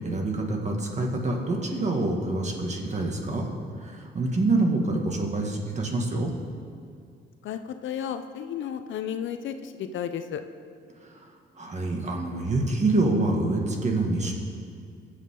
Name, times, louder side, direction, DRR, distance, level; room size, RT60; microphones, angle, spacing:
voice 1, 0.0-3.5 3.8-6.3 11.6-14.3, right 2 dB, 35° right, 1 dB, 2.1 m, -26 dB
voice 2, 7.4-10.4, left 8 dB, 75° left, 9 dB, 0.7 m, -33 dB
21.5 x 7.5 x 3.9 m, 2.3 s
cardioid pair, 90°, 20 cm